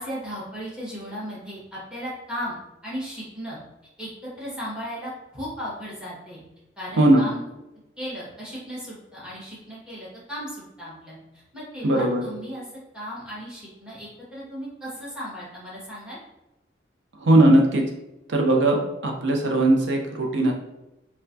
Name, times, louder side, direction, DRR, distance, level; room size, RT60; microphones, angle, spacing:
voice 1, 0.0-2.6 2.8-3.6 4.0-6.4 6.8-7.4 8.0-11.1 11.5-12.6 12.9-16.2, equal, 5° right, -7 dB, 1.3 m, -36 dB
voice 2, 7.0-7.3 11.8-12.2 17.2-17.8 18.3-20.5, right 1 dB, 85° right, 1 dB, 0.6 m, -19 dB
4.4 x 2.2 x 2.6 m, 0.95 s
head